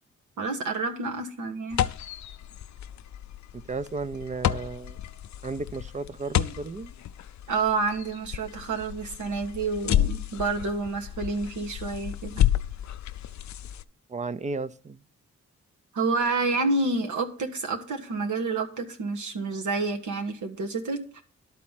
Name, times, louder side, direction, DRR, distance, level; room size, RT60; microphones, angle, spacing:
voice 1, 0.4-1.9 7.5-12.4 15.9-21.2, right 3 dB, 85° right, 1.5 m, -29 dB
sound 1, 1.7-13.8, left 11 dB, 75° left, 0.5 m, -31 dB
voice 2, 3.5-5.0 5.4-6.9 14.1-15.0, right 3 dB, 25° right, 0.5 m, -34 dB
12.0 x 4.2 x 7.4 m
cardioid pair, 90°, 29 cm